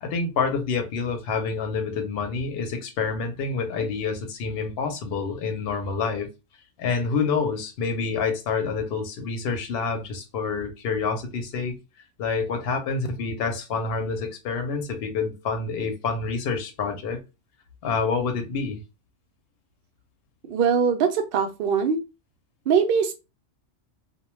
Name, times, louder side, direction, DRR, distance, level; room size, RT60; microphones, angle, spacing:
voice 1, 0.0-6.3 6.8-11.7 12.2-17.2 17.8-18.8, left 5 dB, 60° left, 0.8 m, -27 dB
voice 2, 20.4-22.0 22.7-23.1, right 6 dB, 60° right, 0.7 m, -22 dB
2.2 x 2.1 x 3.0 m
omnidirectional pair, 1.3 m